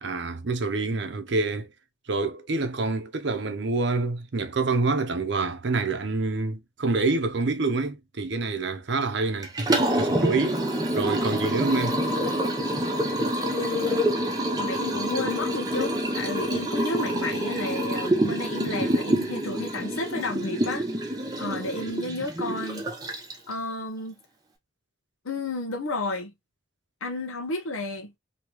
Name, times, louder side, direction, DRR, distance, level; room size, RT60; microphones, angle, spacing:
voice 1, 0.0-1.7 2.1-10.6 10.9-12.0, right 3 dB, 55° right, 0.6 m, -27 dB
Liquid, 9.4-23.5, right 1 dB, 20° right, 0.7 m, -27 dB
voice 2, 13.5-14.0 14.5-20.9 21.4-22.9 23.5-24.1 25.2-26.3 27.0-28.2, left 2 dB, 90° left, 0.8 m, -32 dB
3.0 x 2.8 x 2.9 m
head